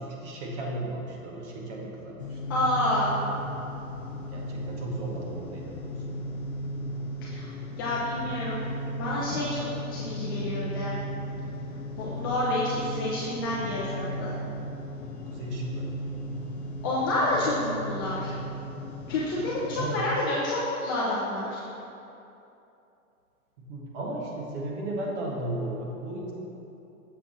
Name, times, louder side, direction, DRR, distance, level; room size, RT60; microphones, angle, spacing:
voice 1, 0.0-2.4 4.3-6.2 15.3-15.9 19.8-20.0 23.6-26.3, right 1 dB, 50° right, -2 dB, 1.6 m, -35 dB
sound 1, 2.2-20.1, equal, 50° left, 0.8 m, -36 dB
voice 2, 2.5-3.1 7.3-7.5 7.8-8.7 9.0-9.6 9.9-10.9 12.0-14.4 16.8-18.3 19.1-21.5, left 1 dB, 15° left, -7 dB, 0.4 m, -28 dB
7.1 x 5.8 x 4.0 m, 2.8 s
hypercardioid pair, 135°, 44 cm